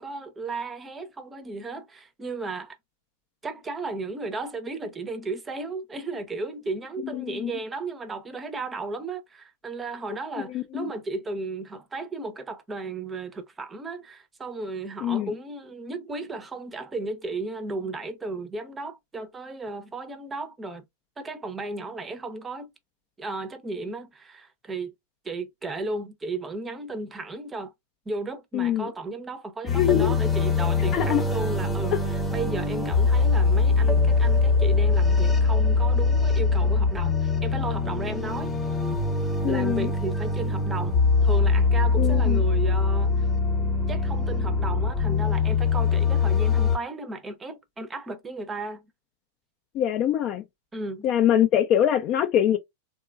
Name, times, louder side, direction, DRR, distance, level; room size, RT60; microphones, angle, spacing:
voice 1, 0.0-2.8 3.4-20.8 21.2-22.7 23.2-24.9 25.2-27.7 28.1-38.5 39.4-43.3 43.9-48.8 50.7-51.1, right 3 dB, 15° right, 0.6 m, -34 dB
voice 2, 7.0-7.5 10.5-10.9 15.0-15.3 28.5-28.9 29.7-30.1 30.9-31.2 31.9-32.0 39.4-39.9 42.0-42.4 49.7-50.4 51.0-52.6, left 10 dB, 40° left, 0.4 m, -23 dB
sound 1, 29.7-46.8, left 4 dB, 10° left, 0.8 m, -23 dB
2.9 x 2.2 x 2.3 m
hypercardioid pair, 100°, 0 cm